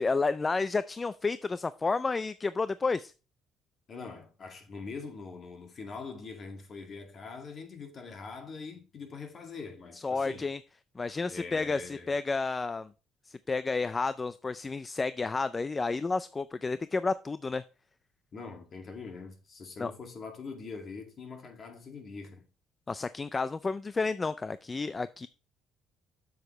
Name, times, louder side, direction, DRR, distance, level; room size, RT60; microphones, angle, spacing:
voice 1, 0.0-3.1 10.0-10.6 11.0-12.9 13.3-17.6 19.8-19.9 22.9-25.3, left 4 dB, 20° left, 0.3 m, -31 dB
voice 2, 3.9-10.5 11.3-12.2 18.3-22.5, left 4 dB, 45° left, 2.2 m, -43 dB
7.9 x 7.1 x 3.2 m
cardioid pair, 115°, 0 cm